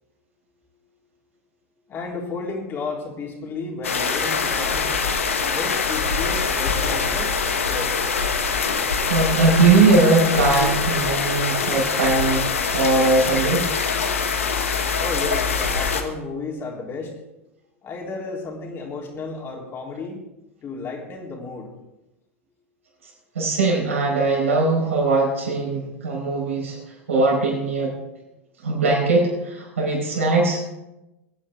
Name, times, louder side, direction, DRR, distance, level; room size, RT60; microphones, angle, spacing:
voice 1, 1.9-4.9 5.5-7.4 7.6-7.9 15.0-17.1 17.8-20.2 20.6-21.7, left 3 dB, 35° left, -1 dB, 3.5 m, -32 dB
sound 1, 3.8-16.0, left 5 dB, 85° left, 1.4 m, -23 dB
voice 2, 9.0-12.5 12.7-13.7 23.3-26.8 27.1-27.9 28.6-30.6, right 3 dB, 80° right, -2 dB, 4.9 m, -20 dB
20.5 x 9.8 x 3.7 m, 0.96 s
hypercardioid pair, 90°, 7 cm